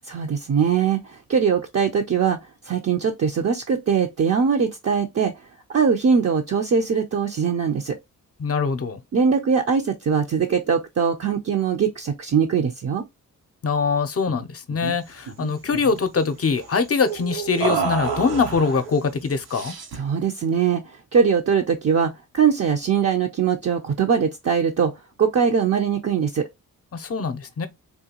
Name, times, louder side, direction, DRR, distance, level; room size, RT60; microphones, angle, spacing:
voice 1, 0.1-2.4 2.7-5.3 5.7-8.0 9.1-13.0 19.9-26.5, right 6 dB, 40° right, 0.6 m, -21 dB
voice 2, 8.4-9.0 13.6-19.8 26.9-27.7, left 5 dB, 40° left, 0.6 m, -23 dB
sound 1, 14.3-14.5 14.7-14.9 15.3-16.0 17.6-18.8 19.5-20.1, right 5 dB, 80° right, 0.8 m, -29 dB
sound 2, 15.0-19.5, right 7 dB, 55° right, 0.9 m, -37 dB
3.7 x 2.2 x 2.8 m
cardioid pair, 55°, 37 cm